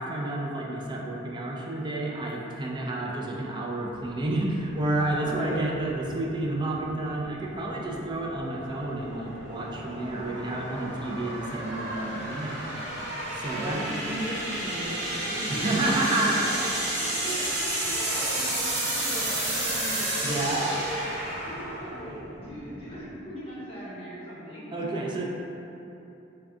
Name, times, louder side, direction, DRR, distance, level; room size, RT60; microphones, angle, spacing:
voice 1, 0.0-12.8 13.3-13.8 15.5-16.4 17.2-17.4 20.2-20.7 24.7-25.3, right 2 dB, 25° right, -2 dB, 0.4 m, -30 dB
sound 1, 4.0-23.1, right 1 dB, 50° right, 1.0 m, -32 dB
voice 2, 5.2-5.6 13.6-21.0 21.4-24.7, equal, 30° left, -9 dB, 1.0 m, -38 dB
3.6 x 2.3 x 3.5 m, 3.0 s
head